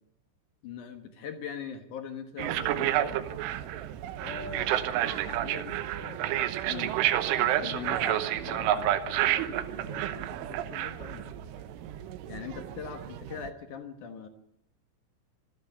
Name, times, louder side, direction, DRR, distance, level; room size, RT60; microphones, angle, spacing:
voice 1, 0.6-3.1 6.7-6.9 7.4-8.2 12.3-14.3, left 7 dB, 75° left, 7 dB, 1.8 m, -40 dB
sound 1, 2.4-13.5, right 12 dB, 80° right, 3.5 m, -30 dB
voice 2, 4.2-6.2 7.8-11.7, left 3 dB, 50° left, 5 dB, 1.8 m, -45 dB
26.0 x 11.5 x 8.8 m, 0.80 s
omnidirectional pair, 5.7 m